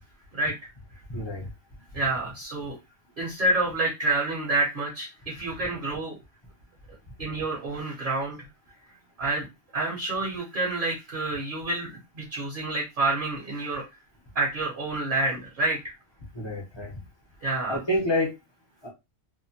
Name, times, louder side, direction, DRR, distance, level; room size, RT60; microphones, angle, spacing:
voice 1, 1.1-1.5 16.3-17.0 17.7-18.4 18.8-18.9, left 1 dB, 25° left, -3 dB, 0.6 m, -28 dB
voice 2, 1.9-2.8 3.2-6.2 7.2-8.4 9.2-9.5 9.7-13.8 14.3-15.9 17.4-17.8, right 2 dB, 45° right, -2 dB, 1.0 m, -28 dB
2.8 x 2.1 x 2.7 m, 0.23 s
omnidirectional pair, 1.4 m